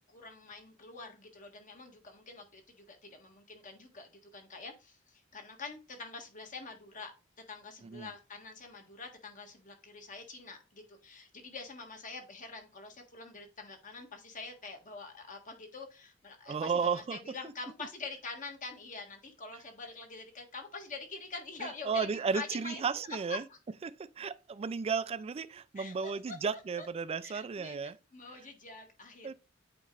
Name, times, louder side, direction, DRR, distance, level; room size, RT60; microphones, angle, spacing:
voice 1, 0.1-7.1 7.5-22.8 23.3-23.4 25.7-26.9 27.2-29.3, left 3 dB, 40° left, 1.5 m, -46 dB
voice 2, 16.5-17.2 21.6-23.4 23.8-28.0 29.2-29.3, right 5 dB, 30° right, 0.3 m, -34 dB
8.3 x 2.9 x 4.6 m
head